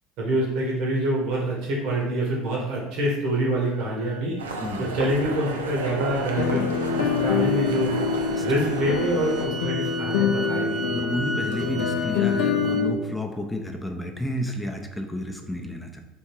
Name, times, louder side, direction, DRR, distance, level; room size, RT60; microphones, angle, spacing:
voice 1, 0.2-4.4 4.8-6.6 6.9-7.9 8.4-11.2, right 1 dB, 60° right, -4 dB, 1.3 m, -26 dB
sound 1, 3.7-12.8, right 2 dB, 30° right, 0.5 m, -37 dB
sound 2, 4.4-9.5, right 3 dB, 85° right, 0.4 m, -32 dB
sound 3, 6.4-12.9, left 6 dB, 65° left, 0.4 m, -25 dB
voice 2, 8.3-8.7 10.9-16.0, left 1 dB, 10° left, 3 dB, 0.7 m, -31 dB
3.6 x 2.7 x 4.6 m, 1.0 s
hypercardioid pair, 70°, 0 cm